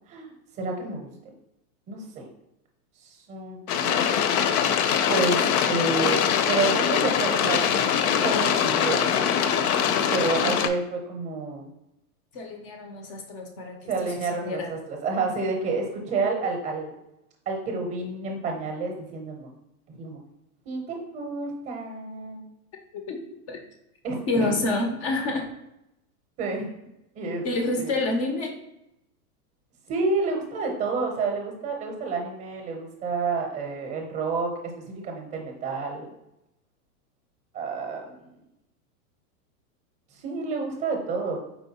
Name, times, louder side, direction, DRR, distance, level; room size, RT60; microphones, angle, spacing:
voice 1, 0.6-1.3 1.9-2.3 3.0-4.3 5.1-6.2 6.5-7.7 7.9-9.0 10.1-11.7 13.9-16.9 17.5-19.5 19.9-20.2 20.7-22.4 24.0-24.6 26.4-26.7 27.2-27.5 27.8-27.9 29.9-36.1 37.5-38.3 40.2-41.4, right 4 dB, 20° right, 2 dB, 0.6 m, -29 dB
sound 1, 3.7-10.7, left 8 dB, 75° left, 0.6 m, -23 dB
voice 2, 12.3-13.9 14.3-14.7 22.9-23.6 24.3-25.5 27.4-28.6, left 2 dB, 25° left, 4 dB, 0.4 m, -28 dB
4.5 x 3.7 x 2.8 m, 0.86 s
hypercardioid pair, 140°, 45 cm